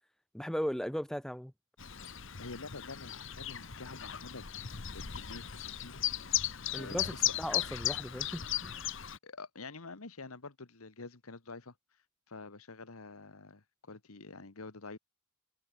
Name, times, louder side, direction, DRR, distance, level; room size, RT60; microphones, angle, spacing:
voice 1, 0.3-1.5 6.7-8.9, equal, ahead, 0.7 m, -37 dB
Chirp tweet, 1.8-9.2, left 11 dB, 60° left, 1.3 m, -36 dB
voice 2, 2.4-4.5 4.9-6.4 6.8-7.3 9.2-11.7 12.3-15.0, left 3 dB, 85° left, 1.5 m, -47 dB
head